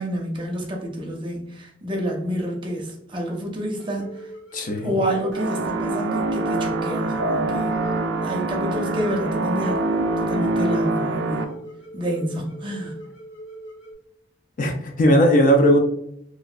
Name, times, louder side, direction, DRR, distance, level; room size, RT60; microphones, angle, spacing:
voice 1, 0.0-4.3 4.8-7.8 8.2-9.8 10.2-11.5 11.9-13.0, equal, 25° right, 0 dB, 0.6 m, -28 dB
sound 1, 3.7-13.9, right 1 dB, 80° left, 1.0 m, -41 dB
voice 2, 4.5-5.0 14.6-15.8, equal, 45° left, 4 dB, 0.4 m, -17 dB
sound 2, 5.3-11.4, right 2 dB, 80° right, 0.4 m, -24 dB
2.9 x 2.4 x 2.4 m, 0.74 s
head